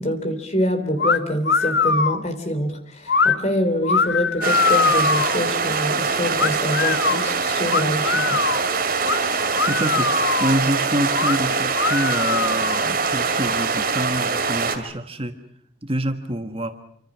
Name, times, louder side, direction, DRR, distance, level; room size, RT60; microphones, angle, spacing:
voice 1, 0.0-8.4, equal, 35° left, 7 dB, 3.4 m, -25 dB
sound 1, 1.0-1.2 1.5-2.2 3.1-3.4 3.8-5.4 6.4-7.2 7.7-8.6 9.1-9.2 9.5-10.6 11.1-11.4 11.7-12.9, left 5 dB, 60° left, 1.2 m, -21 dB
sound 2, 4.4-14.8, right 5 dB, 45° right, 2.7 m, -23 dB
voice 2, 9.6-10.1 10.4-15.4 15.8-16.7, right 1 dB, 30° right, 7 dB, 1.4 m, -26 dB
27.5 x 25.5 x 6.2 m, 0.66 s
head